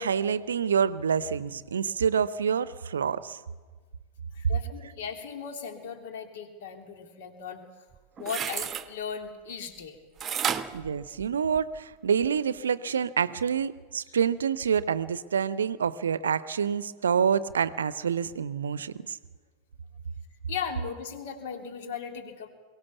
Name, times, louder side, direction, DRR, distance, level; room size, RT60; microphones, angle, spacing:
voice 1, 0.0-3.4 10.7-19.2, right 7 dB, 70° right, 18 dB, 0.7 m, -27 dB
voice 2, 4.3-7.6 8.2-10.0 10.5-10.6 20.5-22.5, left 6 dB, 55° left, 5 dB, 3.1 m, -37 dB
sound 1, 7.9-8.9 10.2-11.8 12.2-12.3, right 8 dB, 25° right, 1.0 m, -32 dB
22.5 x 17.5 x 7.1 m, 1.4 s
figure-of-eight pair, 90°, 0 cm